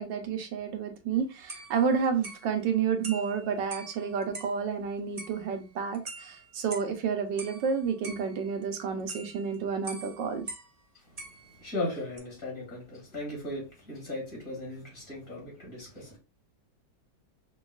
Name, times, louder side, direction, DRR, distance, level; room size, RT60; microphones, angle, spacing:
voice 1, 0.0-10.5, right 6 dB, 90° right, 1.4 m, -30 dB
sound 1, 1.1-1.2 1.5-4.7 5.2-7.0 7.4-10.8 11.2-11.8 12.2-12.3, right 3 dB, 55° right, 0.4 m, -45 dB
voice 2, 11.6-16.2, left 2 dB, 45° left, 2.8 m, -37 dB
5.3 x 2.3 x 2.3 m
omnidirectional pair, 1.9 m